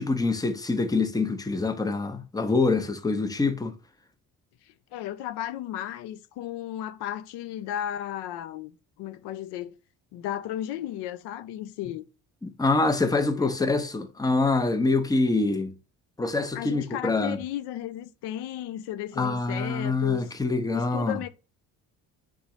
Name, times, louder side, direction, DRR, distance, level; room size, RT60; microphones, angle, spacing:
voice 1, 0.0-3.7 12.4-15.7 16.2-17.4 19.2-21.2, left 3 dB, 10° left, 0.6 m, -25 dB
voice 2, 4.6-9.8 10.1-12.1 13.3-13.8 16.5-20.2 20.7-21.3, left 11 dB, 85° left, 0.5 m, -34 dB
4.0 x 3.8 x 3.0 m
supercardioid pair, 75°, 39 cm